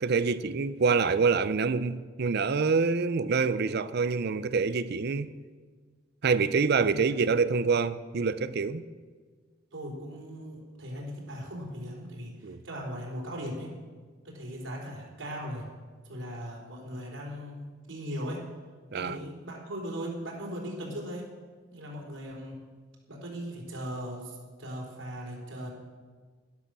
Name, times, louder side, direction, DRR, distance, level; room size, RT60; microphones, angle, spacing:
voice 1, 0.0-5.3 6.2-8.8 12.4-12.6 18.9-19.2, right 4 dB, 55° right, 0.5 m, -26 dB
voice 2, 9.7-13.8 14.2-15.7 16.0-18.5 18.9-21.3 21.7-22.6 23.1-25.7, equal, 80° right, 3.7 m, -38 dB
12.0 x 11.5 x 6.2 m
head